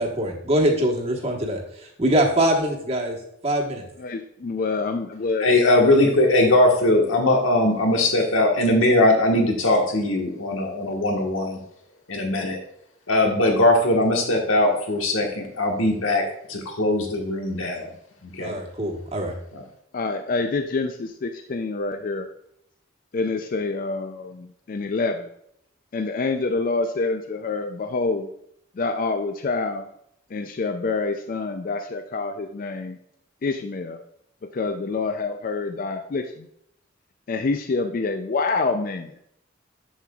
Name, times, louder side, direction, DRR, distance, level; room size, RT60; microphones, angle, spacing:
voice 1, 0.0-1.6 2.0-3.2 3.4-3.6 18.4-19.3, right 1 dB, 30° right, -1 dB, 1.2 m, -22 dB
voice 2, 4.0-5.5 19.9-22.3 23.1-25.3 25.9-28.3 28.8-29.9 30.3-33.0 33.4-34.0 34.5-36.5 37.3-39.1, left 3 dB, 45° left, 6 dB, 0.4 m, -27 dB
voice 3, 5.4-11.6 12.1-12.6 13.1-16.2 16.5-17.9 18.2-18.6 19.5-19.6, left 1 dB, 90° left, 1 dB, 1.4 m, -20 dB
7.5 x 7.1 x 2.3 m, 0.74 s
head